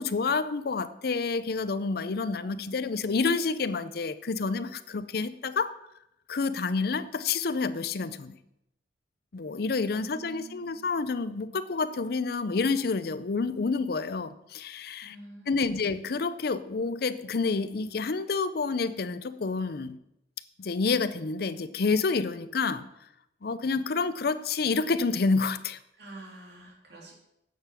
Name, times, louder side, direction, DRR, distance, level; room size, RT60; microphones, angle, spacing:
voice 1, 0.0-5.7 6.3-8.4 9.3-15.2 15.5-20.0 20.6-22.9 23.4-25.8, left 4 dB, 60° left, 14 dB, 0.5 m, -29 dB
voice 2, 10.0-10.8 15.0-15.8 26.0-27.1, right 2 dB, 65° right, -2 dB, 3.1 m, -47 dB
9.3 x 6.8 x 5.8 m, 0.83 s
head